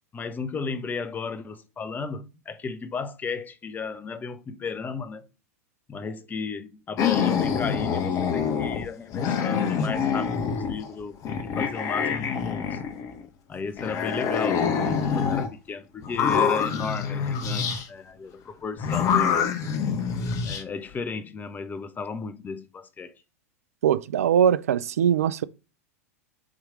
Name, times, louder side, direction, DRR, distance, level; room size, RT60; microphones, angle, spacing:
voice 1, 0.1-5.3 5.9-12.8 13.5-19.5 20.4-23.1, left 5 dB, 20° left, 0.8 m, -34 dB
sound 1, 7.0-8.9 9.1-10.9 11.2-13.3 13.8-15.5 16.0-17.8 18.8-20.6, left 7 dB, 40° left, 1.1 m, -26 dB
voice 2, 23.8-25.4, right 9 dB, 70° right, 0.5 m, -21 dB
7.5 x 3.2 x 5.0 m
hypercardioid pair, 95°, 8 cm